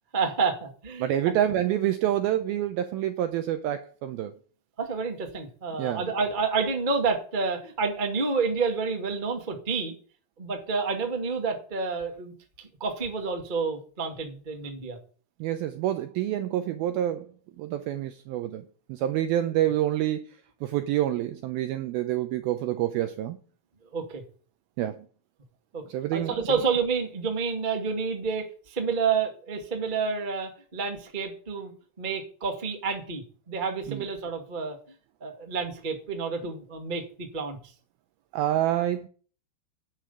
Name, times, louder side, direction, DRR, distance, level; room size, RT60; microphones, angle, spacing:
voice 1, 0.1-1.3 4.8-9.9 10.4-15.0 23.9-24.2 25.7-25.8 26.1-34.8 35.2-37.6, right 5 dB, 55° right, 0.5 m, -29 dB
voice 2, 1.0-4.3 5.8-6.0 15.4-17.3 17.6-20.3 20.6-23.4 24.8-25.1 25.9-26.6 33.9-34.0 38.3-39.1, right 12 dB, 85° right, 2.2 m, -27 dB
11.0 x 6.5 x 8.2 m
omnidirectional pair, 5.1 m